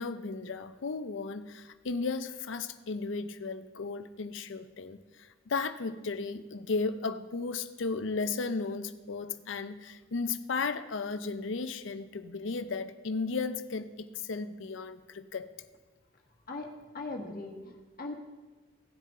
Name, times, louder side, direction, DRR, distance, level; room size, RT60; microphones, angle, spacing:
voice 1, 0.0-5.0 5.5-15.5, left 4 dB, 65° left, 11 dB, 0.5 m, -35 dB
voice 2, 16.9-18.2, left 2 dB, 45° left, 2 dB, 1.4 m, -39 dB
17.0 x 6.6 x 3.8 m, 1.3 s
head